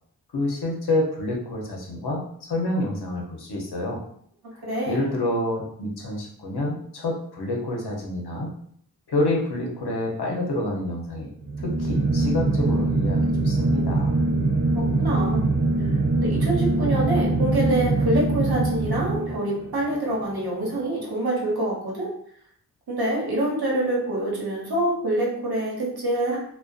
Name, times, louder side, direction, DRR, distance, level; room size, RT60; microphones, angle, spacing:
voice 1, 0.3-4.0 4.5-8.5 9.1-11.3 11.6-14.1, left 1 dB, 85° left, -1 dB, 0.7 m, -28 dB
voice 2, 4.6-5.0 14.8-15.5 15.8-22.1 22.9-26.4, right 1 dB, 70° right, -4 dB, 1.0 m, -26 dB
sound 1, 11.4-19.7, right 2 dB, 30° right, 0.8 m, -23 dB
2.5 x 2.2 x 2.3 m, 0.65 s
cardioid pair, 40°, 38 cm